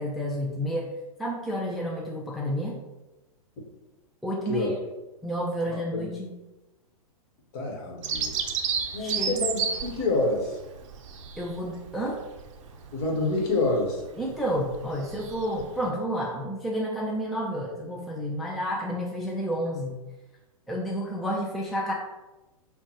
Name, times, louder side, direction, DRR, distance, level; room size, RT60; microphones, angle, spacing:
voice 1, 0.0-2.8 4.2-4.8 5.2-6.3 9.0-9.4 11.4-12.2 14.2-20.0 20.7-21.9, equal, ahead, -3 dB, 0.3 m, -30 dB
voice 2, 5.6-6.0 7.5-8.5 8.9-10.6 12.9-14.0, left 2 dB, 50° left, 0 dB, 1.2 m, -27 dB
Bird vocalization bird call bird song, 8.0-15.9, right 6 dB, 55° right, 0.5 m, -33 dB
5.5 x 2.2 x 3.0 m, 1.0 s
hypercardioid pair, 115°, 19 cm